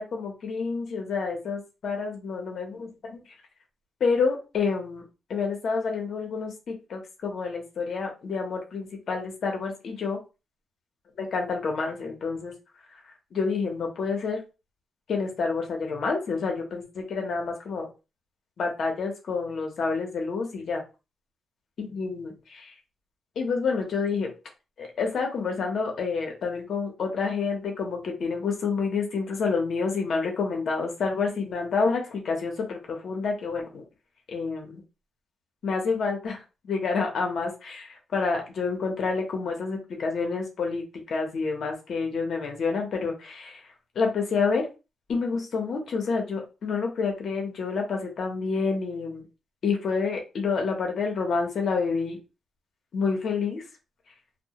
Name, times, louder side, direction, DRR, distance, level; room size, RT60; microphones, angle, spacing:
voice 1, 0.0-2.9 4.0-5.0 5.3-10.2 11.2-12.5 13.3-14.4 15.1-17.9 18.6-20.8 21.8-22.7 23.4-24.3 24.8-33.8 34.3-34.8 35.6-36.4 36.7-43.6 43.9-44.6 45.1-49.2 49.6-52.2 52.9-53.6, left 4 dB, 60° left, 2 dB, 0.7 m, -28 dB
2.1 x 2.1 x 2.8 m, 0.30 s
cardioid pair, 120°, 0 cm